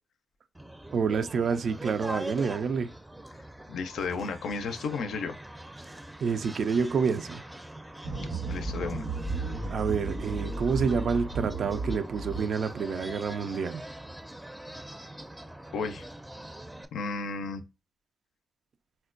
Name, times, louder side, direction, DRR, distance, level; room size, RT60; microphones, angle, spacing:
sound 1, 0.5-16.9, right 1 dB, 10° right, 0.5 m, -43 dB
voice 1, 0.9-2.9 6.2-7.4 9.7-13.8, right 5 dB, 70° right, 0.4 m, -28 dB
voice 2, 3.7-5.3 8.5-9.0 15.7-16.1 16.9-17.6, left 4 dB, 80° left, 0.4 m, -33 dB
sound 2, 8.0-12.5, right 3 dB, 85° right, 1.6 m, -34 dB
4.2 x 2.1 x 2.4 m
cardioid pair, 60°, 0 cm